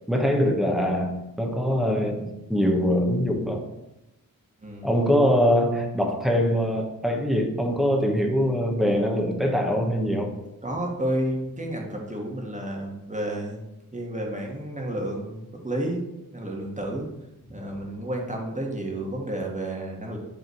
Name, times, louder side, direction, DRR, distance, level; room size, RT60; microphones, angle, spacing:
voice 1, 0.1-3.6 4.8-10.3, equal, ahead, 2 dB, 1.2 m, -23 dB
voice 2, 10.6-13.6 13.9-16.0 16.3-17.1 17.5-20.2, right 1 dB, 20° right, -1 dB, 1.7 m, -31 dB
8.3 x 3.6 x 4.7 m, 0.93 s
wide cardioid pair, 80°, 36 cm